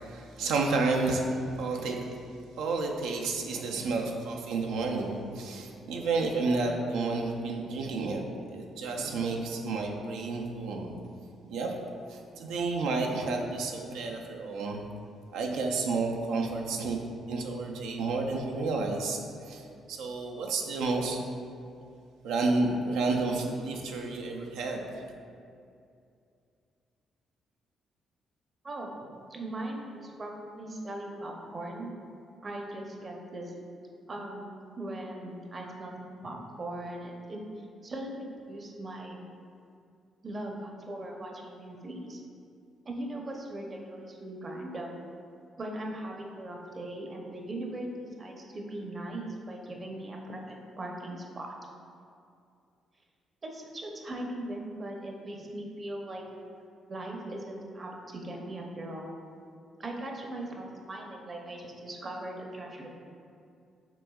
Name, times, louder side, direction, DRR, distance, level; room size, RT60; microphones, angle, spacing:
voice 1, 0.0-1.2 1.6-2.2 2.6-8.3 8.5-10.9 11.5-11.8 12.1-14.8 15.3-17.0 17.3-19.6 19.9-21.3 22.2-25.1, right 3 dB, 90° right, 1 dB, 0.5 m, -31 dB
voice 2, 28.6-29.0 29.3-31.9 32.4-33.5 34.1-34.4 34.8-37.4 37.8-39.2 40.2-42.2 42.8-45.0 45.6-51.5 53.4-56.2 56.9-59.1 59.8-63.0, right 1 dB, 35° right, 1 dB, 0.7 m, -39 dB
5.9 x 3.5 x 2.3 m, 2.5 s
cardioid pair, 90°, 0 cm